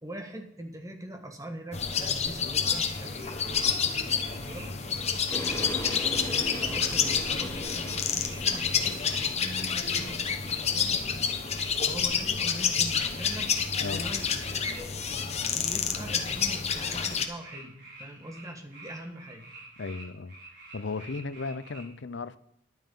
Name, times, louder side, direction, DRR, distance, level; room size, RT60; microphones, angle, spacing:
voice 1, 0.0-4.7 5.6-11.0 11.9-14.9 15.5-19.5, right 1 dB, 20° right, 1.6 m, -43 dB
sound 1, 1.7-17.3, left 6 dB, 35° left, 1.1 m, -29 dB
sound 2, 2.6-21.8, right 2 dB, 65° right, 4.7 m, -49 dB
sound 3, 5.3-10.7, left 1 dB, 15° left, 1.3 m, -39 dB
voice 2, 19.8-20.3 20.7-22.4, left 3 dB, 70° left, 0.6 m, -35 dB
11.0 x 9.1 x 5.5 m
head